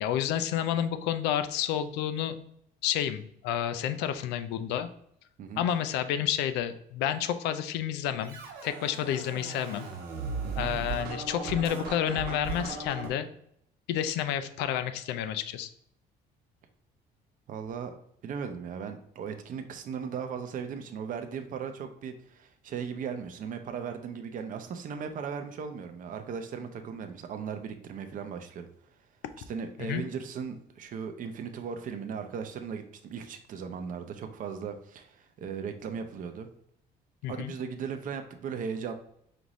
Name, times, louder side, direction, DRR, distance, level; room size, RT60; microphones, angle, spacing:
voice 1, 0.0-2.4 2.8-4.9 5.6-9.9 10.6-13.3 13.9-15.7 29.8-30.0 37.2-37.5, left 10 dB, 90° left, 11 dB, 0.4 m, -30 dB
Scratching (performance technique), 8.2-13.1, right 4 dB, 80° right, 1.1 m, -37 dB
voice 2, 17.5-17.9 18.2-28.7 29.5-36.5 37.3-38.9, right 6 dB, 50° right, 7 dB, 0.6 m, -37 dB
5.1 x 2.6 x 3.0 m, 0.72 s
cardioid pair, 110°, 17 cm